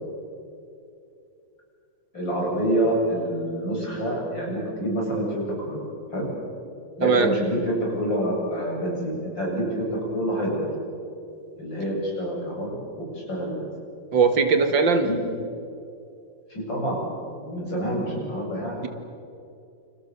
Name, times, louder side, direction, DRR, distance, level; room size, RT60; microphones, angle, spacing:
voice 1, 2.1-5.8 6.1-6.3 7.0-9.8 10.1-10.7 11.6-12.8 13.1-13.7 15.0-15.2 16.5-17.0 17.4-18.8, right 1 dB, 80° left, -2 dB, 8.7 m, -27 dB
voice 2, 7.0-7.3 14.1-15.2, right 4 dB, 80° right, 8 dB, 2.7 m, -20 dB
29.0 x 27.5 x 7.1 m, 2.6 s
omnidirectional pair, 2.0 m